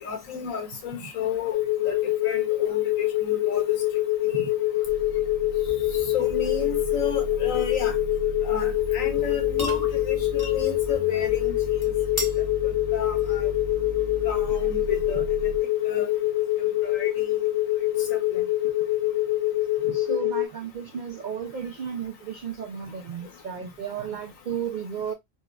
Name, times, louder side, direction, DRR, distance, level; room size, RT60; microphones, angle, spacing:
voice 1, 0.0-1.6 1.8-2.0 2.2-3.7 4.3-4.5 6.1-7.9 8.4-11.8 12.2-12.3 12.9-13.5 14.2-15.2 15.8-16.1 16.8-17.1 18.1-18.4, left 7 dB, 85° left, 1.3 m, -32 dB
sound 1, 1.5-20.4, left 15 dB, 70° left, 1.0 m, -25 dB
sound 2, 4.8-15.6, right 3 dB, 50° right, 0.7 m, -37 dB
sound 3, 9.2-15.6, left 1 dB, 20° left, 0.6 m, -39 dB
voice 2, 19.8-25.1, right 7 dB, 80° right, 0.4 m, -34 dB
4.2 x 2.2 x 2.3 m
omnidirectional pair, 1.4 m